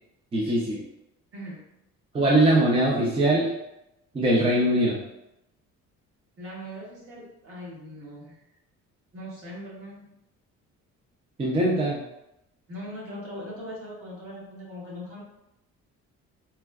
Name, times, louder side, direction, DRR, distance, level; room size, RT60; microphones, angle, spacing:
voice 1, 0.3-0.8 2.1-3.5 4.1-5.0 11.4-12.0, right 1 dB, 20° right, -3 dB, 0.4 m, -21 dB
voice 2, 1.3-1.7 6.4-8.4 9.1-10.1 12.7-15.2, equal, 50° right, -6 dB, 1.4 m, -40 dB
4.2 x 2.1 x 2.3 m, 0.87 s
cardioid pair, 120°, 30 cm